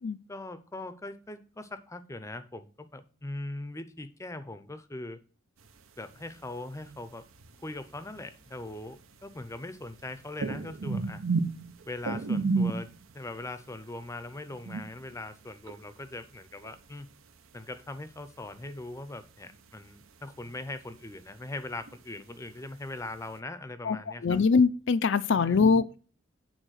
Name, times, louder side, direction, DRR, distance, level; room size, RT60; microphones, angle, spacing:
voice 1, 0.3-5.2 6.0-7.3 7.6-11.2 11.9-17.1 17.5-24.4 25.3-25.7, left 2 dB, 15° left, 0.6 m, -41 dB
sound 1, 5.6-6.4 6.7-17.4 17.7-19.3 19.5-23.4, right 4 dB, 75° right, 0.9 m, -34 dB
voice 2, 24.2-26.0, left 5 dB, 60° left, 0.5 m, -23 dB
9.1 x 4.0 x 6.4 m
head